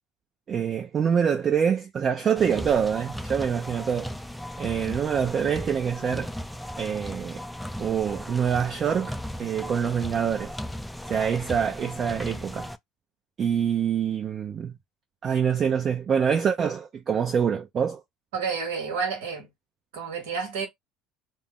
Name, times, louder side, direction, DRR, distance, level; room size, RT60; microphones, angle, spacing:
voice 1, 0.5-4.1 4.6-6.3 6.8-7.4 7.8-10.5 11.1-12.7 13.4-14.7 15.2-18.0, right 7 dB, 40° right, 0.6 m, -25 dB
sound 1, 2.3-12.8, equal, 5° left, 0.3 m, -36 dB
voice 2, 18.3-19.5 19.9-20.7, right 5 dB, 75° right, 1.0 m, -30 dB
2.6 x 2.0 x 3.5 m
hypercardioid pair, 70°, 0 cm